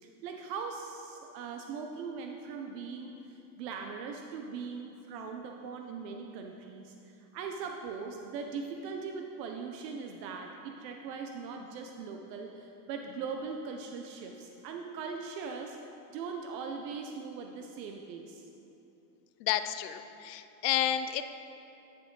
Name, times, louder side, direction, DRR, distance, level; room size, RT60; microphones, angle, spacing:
voice 1, 0.0-18.5, right 5 dB, 90° right, 3 dB, 0.8 m, -40 dB
voice 2, 19.4-21.3, left 11 dB, 85° left, 10 dB, 0.6 m, -31 dB
9.8 x 6.0 x 3.8 m, 2.9 s
supercardioid pair, 180°, 48 cm